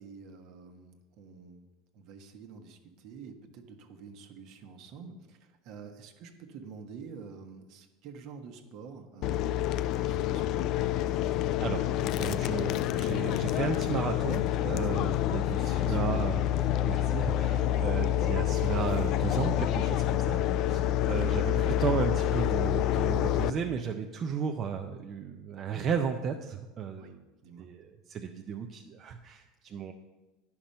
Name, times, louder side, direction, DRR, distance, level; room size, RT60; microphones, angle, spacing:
voice 1, 0.0-1.7 1.9-10.7 15.3-16.1 20.6-20.8 27.0-27.1 27.4-27.7, right 5 dB, 55° right, 6 dB, 1.1 m, -48 dB
sound 1, 9.2-23.5, left 12 dB, 50° left, 0.3 m, -28 dB
voice 2, 11.3-27.2 27.6-29.9, right 6 dB, 35° right, 4 dB, 0.5 m, -34 dB
10.5 x 5.8 x 5.4 m, 1.1 s
supercardioid pair, 130°, 0 cm